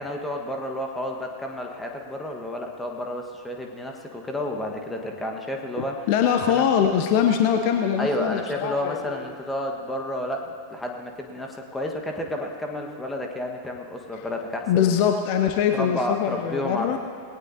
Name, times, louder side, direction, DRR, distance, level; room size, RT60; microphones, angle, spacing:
voice 1, 0.0-6.1 6.5-6.6 8.0-15.0 15.7-17.0, left 1 dB, 5° left, 1 dB, 1.5 m, -31 dB
voice 2, 5.8-9.0 14.7-17.0, left 8 dB, 45° left, 5 dB, 0.8 m, -22 dB
19.5 x 17.5 x 2.8 m, 2.3 s
figure-of-eight pair, 90°, 0 cm